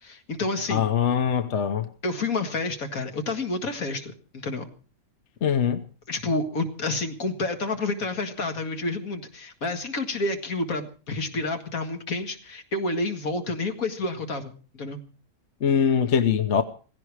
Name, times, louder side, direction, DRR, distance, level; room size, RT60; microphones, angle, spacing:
voice 1, 0.0-0.9 2.0-4.7 6.1-15.0, left 2 dB, 70° left, 2.4 m, -29 dB
voice 2, 0.7-1.9 5.4-5.8 15.6-16.6, left 7 dB, 55° left, 1.2 m, -22 dB
17.0 x 16.0 x 4.8 m
omnidirectional pair, 1.5 m